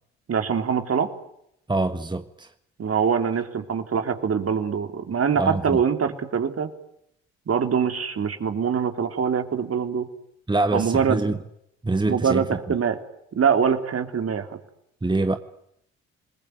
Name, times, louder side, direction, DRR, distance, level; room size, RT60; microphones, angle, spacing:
voice 1, 0.3-1.1 2.8-6.7 7.5-10.1 10.7-11.2 12.1-13.0 13.3-14.6, right 7 dB, 45° right, 3.6 m, -23 dB
voice 2, 1.7-2.5 5.4-5.8 10.5-11.4 11.8-12.4 15.0-15.4, right 2 dB, 15° right, 1.7 m, -24 dB
28.0 x 21.5 x 9.4 m
hypercardioid pair, 50°, 33 cm